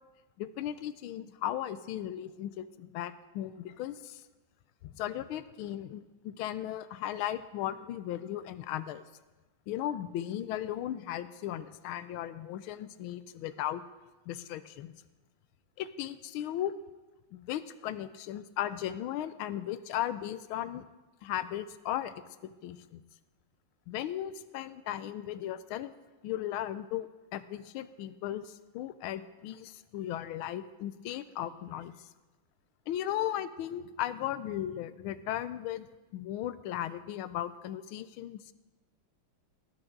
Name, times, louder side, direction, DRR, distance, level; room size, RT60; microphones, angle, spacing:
voice 1, 0.4-4.2 4.8-9.0 9.7-13.8 14.3-14.9 15.8-16.7 17.3-20.9 21.2-23.0 23.9-25.9 26.2-31.9 32.9-35.9 36.1-38.4, left 12 dB, 80° left, 12 dB, 1.5 m, -36 dB
19.5 x 10.5 x 3.8 m, 1.1 s
omnidirectional pair, 2.3 m